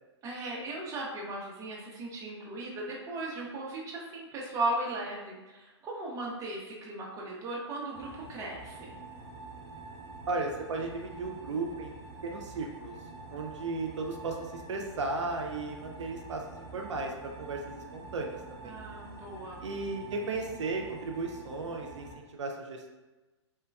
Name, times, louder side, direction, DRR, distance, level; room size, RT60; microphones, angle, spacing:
voice 1, 0.2-9.0 18.6-19.6, right 2 dB, 20° right, -3 dB, 0.6 m, -37 dB
sound 1, 7.9-22.1, right 3 dB, 45° right, 0.8 m, -47 dB
voice 2, 10.3-11.9 12.2-13.0 13.3-18.8 19.6-22.9, right 3 dB, 80° right, 2 dB, 0.4 m, -35 dB
3.0 x 2.2 x 2.3 m, 1.2 s
hypercardioid pair, 120°, 15 cm